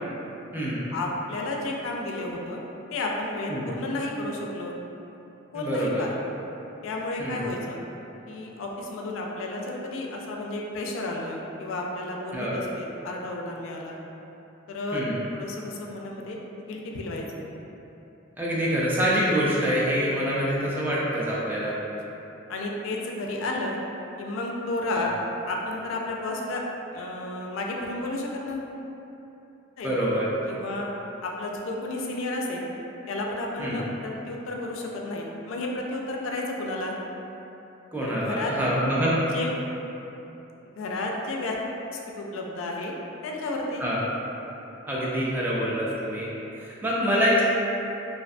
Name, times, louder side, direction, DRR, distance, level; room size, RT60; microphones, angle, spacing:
voice 1, 0.9-2.6 2.9-4.8 5.5-6.2 6.8-7.8 8.3-14.0 14.7-15.0 15.3-16.4 16.7-17.2 21.7-21.8 22.5-23.8 24.2-25.1 25.5-26.6 26.9-28.7 29.8-29.9 30.5-30.9 31.2-32.7 33.1-36.9 38.0-38.5 39.3-39.6 40.8-41.6 42.2-42.9 43.2-43.8, left 2 dB, 80° left, -1 dB, 0.3 m, -32 dB
voice 2, 5.5-6.0 7.2-7.4 12.3-12.6 14.9-15.1 18.4-21.8 24.9-25.1 29.8-30.3 33.6-33.8 37.9-39.1 43.8-44.0 44.9-46.3 46.6-47.4, equal, 10° right, -7 dB, 0.3 m, -25 dB
2.5 x 2.2 x 2.5 m, 3.0 s
head